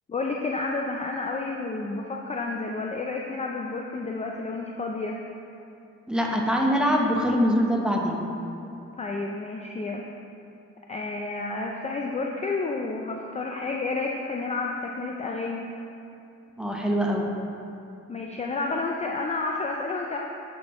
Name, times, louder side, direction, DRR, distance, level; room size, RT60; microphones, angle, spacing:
voice 1, 0.1-5.2 9.0-10.0 10.9-15.7 18.1-20.2, left 3 dB, 20° left, 0 dB, 0.5 m, -30 dB
voice 2, 6.1-8.2 16.6-17.3, equal, 5° right, -1 dB, 0.9 m, -23 dB
8.7 x 5.6 x 3.1 m, 2.7 s
cardioid pair, 90°, 30 cm